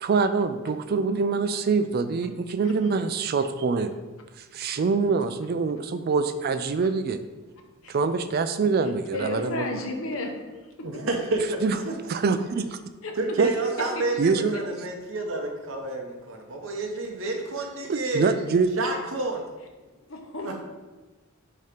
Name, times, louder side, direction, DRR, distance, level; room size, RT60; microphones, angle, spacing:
voice 1, 0.0-3.9 4.5-7.2 7.9-9.7 11.6-11.8 12.1-12.8 13.4-13.5 14.2-14.5 17.9-18.7, right 4 dB, 45° right, 10 dB, 0.4 m, -25 dB
voice 2, 8.8-10.3 10.8-11.0 13.0-13.5 14.0-14.2 14.5-14.6 20.1-20.6, left 2 dB, 75° left, 3 dB, 0.9 m, -34 dB
voice 3, 10.8-11.9 13.2-18.3 18.8-19.5 20.4-20.5, right 2 dB, 65° right, 1 dB, 0.8 m, -29 dB
6.4 x 2.9 x 5.1 m, 1.2 s
head